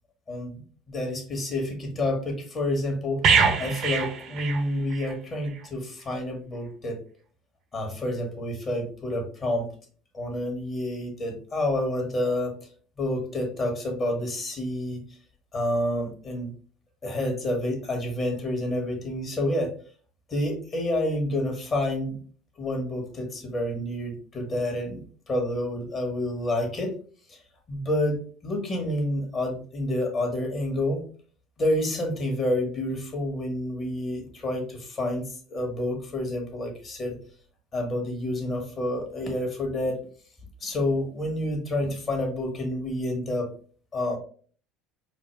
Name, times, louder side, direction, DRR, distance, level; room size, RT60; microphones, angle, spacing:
voice 1, 0.3-7.0 7.7-9.7 10.1-12.5 13.0-15.0 15.5-16.5 17.0-19.7 20.3-22.2 22.6-27.0 27.3-27.4 27.7-31.0 31.6-37.2 37.7-40.0 40.6-43.5 43.9-44.2, left 1 dB, 35° left, 2 dB, 1.6 m, -29 dB
sound 1, 3.2-5.1 5.4-5.6, right 5 dB, 55° right, 0.8 m, -24 dB
4.9 x 2.2 x 3.2 m, 0.43 s
hypercardioid pair, 70°, 0 cm